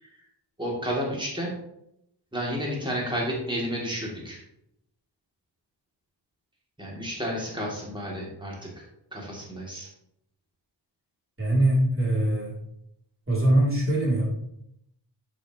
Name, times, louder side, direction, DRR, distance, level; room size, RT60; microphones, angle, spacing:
voice 1, 0.6-1.6 2.3-4.4 6.8-8.8 9.1-9.9, equal, 10° right, -4 dB, 3.1 m, -31 dB
voice 2, 11.4-12.6 13.3-14.3, right 1 dB, 30° right, -4 dB, 3.4 m, -22 dB
7.9 x 7.4 x 3.2 m, 0.79 s
cardioid pair, 70°, 41 cm